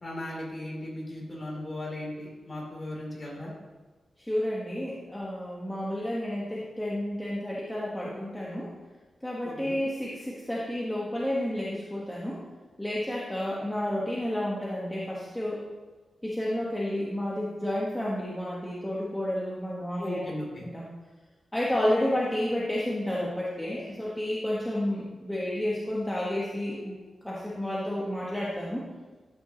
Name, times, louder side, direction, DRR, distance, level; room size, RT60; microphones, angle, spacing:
voice 1, 0.0-3.5 9.4-9.8 20.0-20.6, left 1 dB, 25° left, -3 dB, 3.0 m, -37 dB
voice 2, 4.2-8.7 9.2-12.4 12.8-15.6 16.2-20.2 20.6-20.9 21.5-26.9 27.2-28.8, left 1 dB, 5° left, -6 dB, 1.3 m, -31 dB
13.0 x 9.4 x 2.9 m, 1.3 s
wide cardioid pair, 160°, 0 cm